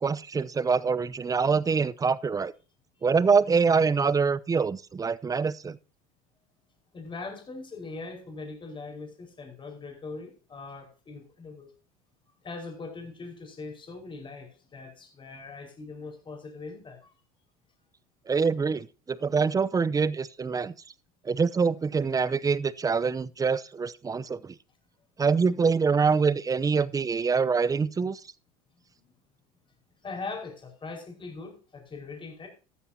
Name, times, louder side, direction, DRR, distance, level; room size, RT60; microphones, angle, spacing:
voice 1, 0.0-2.5 3.0-5.8 18.3-20.7 21.2-24.5 25.2-28.2, right 5 dB, 20° right, 0.7 m, -25 dB
voice 2, 6.9-11.7 12.4-17.1 28.7-29.1 29.9-32.5, left 3 dB, 25° left, 5.1 m, -41 dB
13.5 x 12.5 x 2.8 m
hypercardioid pair, 85°, 19 cm